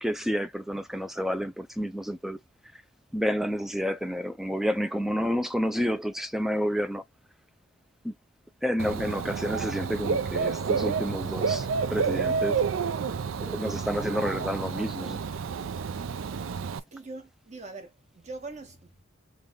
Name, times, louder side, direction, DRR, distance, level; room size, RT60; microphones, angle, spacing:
voice 1, 0.0-2.4 3.1-7.0 8.0-8.1 8.6-12.6 13.4-15.2, equal, ahead, 0.3 m, -29 dB
Dog / Bird, 8.8-16.8, right 5 dB, 75° right, 0.4 m, -30 dB
voice 2, 16.9-19.0, right 3 dB, 35° right, 1.0 m, -42 dB
3.3 x 2.2 x 3.8 m
head